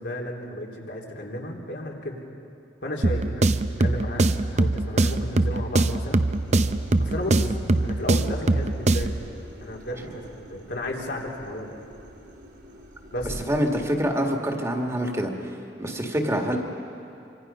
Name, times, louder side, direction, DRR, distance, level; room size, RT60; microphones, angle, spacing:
voice 1, 0.0-2.2 2.8-3.4 3.8-6.2 7.0-7.5 7.8-9.2 9.6-11.7 13.1-13.4, left 1 dB, 75° left, -2 dB, 3.4 m, -33 dB
sound 1, 3.0-9.3, right 2 dB, 40° right, 0.7 m, -23 dB
sound 2, 6.3-13.4, equal, 80° right, 4.0 m, -44 dB
voice 2, 13.2-15.5 15.8-16.6, equal, 15° right, 2 dB, 1.9 m, -26 dB
26.5 x 25.5 x 5.6 m, 2.7 s
head